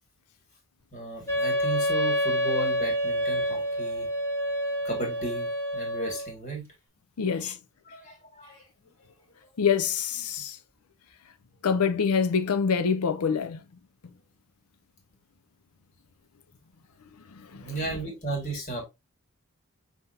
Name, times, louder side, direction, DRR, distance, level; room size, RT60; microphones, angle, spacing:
voice 1, 0.9-4.1 4.8-5.5 5.7-6.7 7.4-7.5 7.9-8.6 17.4-18.8, right 2 dB, 35° left, 2.0 m, -35 dB
Wind instrument woodwind instrument, 1.3-6.3, equal, 10° left, 1.2 m, -28 dB
voice 2, 7.2-7.6 9.6-10.6 11.6-13.6 17.3-17.8, left 6 dB, 90° left, 0.5 m, -26 dB
5.7 x 2.8 x 2.7 m
head